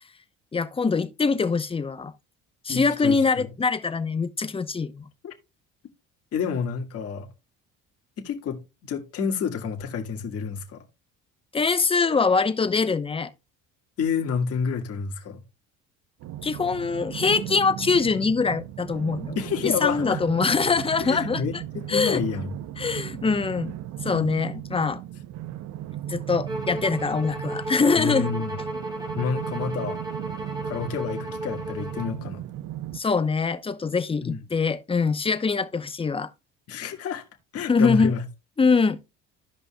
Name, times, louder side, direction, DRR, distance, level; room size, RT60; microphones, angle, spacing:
voice 1, 0.5-2.1 2.6-5.0 11.5-13.3 16.4-19.4 19.6-21.6 21.9-22.2 22.8-23.7 24.0-25.0 26.1-28.3 32.9-36.3 37.7-38.1 38.6-39.0, left 4 dB, 20° left, 0.8 m, -23 dB
voice 2, 2.7-3.5 5.2-5.3 6.3-7.3 8.2-10.8 14.0-15.4 19.4-20.2 21.0-22.6 28.0-28.6 29.2-30.0 30.6-32.4 34.2-34.4 36.7-37.3 37.5-38.3, left 6 dB, 50° left, 1.8 m, -29 dB
sound 1, 16.2-33.0, right 12 dB, 65° right, 0.6 m, -36 dB
Bowed string instrument, 26.5-32.2, right 1 dB, 15° right, 2.0 m, -34 dB
15.0 x 5.3 x 2.2 m
cardioid pair, 115°, 30 cm